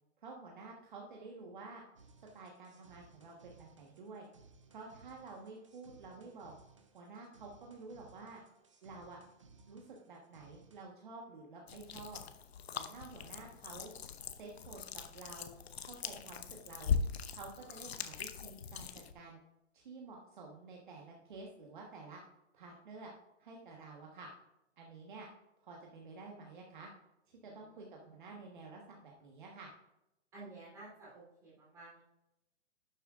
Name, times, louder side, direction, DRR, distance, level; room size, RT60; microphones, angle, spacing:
voice 1, 0.2-1.8 2.3-4.3 4.7-6.5 6.9-8.4 8.8-9.2 9.7-12.2 12.7-13.9 14.4-15.5 15.8-16.9 17.3-19.4 19.7-22.2 22.5-23.1 23.4-24.3 24.8-25.3 25.6-26.9 27.3-29.7, right 3 dB, 40° right, -1 dB, 1.4 m, -50 dB
sound 1, 2.0-10.8, right 4 dB, 25° right, 0.5 m, -62 dB
sound 2, 11.7-19.1, left 6 dB, 60° left, 0.8 m, -40 dB
voice 2, 27.4-28.2 30.3-32.0, right 2 dB, 10° right, -7 dB, 3.4 m, -53 dB
11.5 x 7.5 x 2.5 m, 0.89 s
hypercardioid pair, 180°, 36 cm